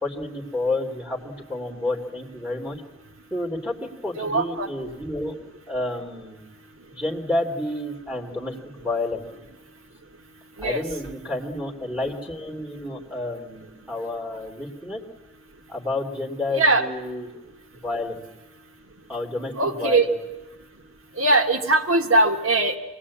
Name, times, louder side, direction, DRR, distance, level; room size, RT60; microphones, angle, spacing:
voice 1, 0.0-2.8 3.3-5.3 5.7-6.5 6.9-9.3 10.6-15.0 15.7-17.3 17.7-18.2 19.1-20.1, left 2 dB, 5° right, 0 dB, 2.9 m, -30 dB
voice 2, 4.1-4.7 10.6-10.8 16.5-16.9 19.5-20.1 21.2-22.8, right 2 dB, 80° right, 5 dB, 1.6 m, -20 dB
25.5 x 20.0 x 8.6 m, 1.2 s
head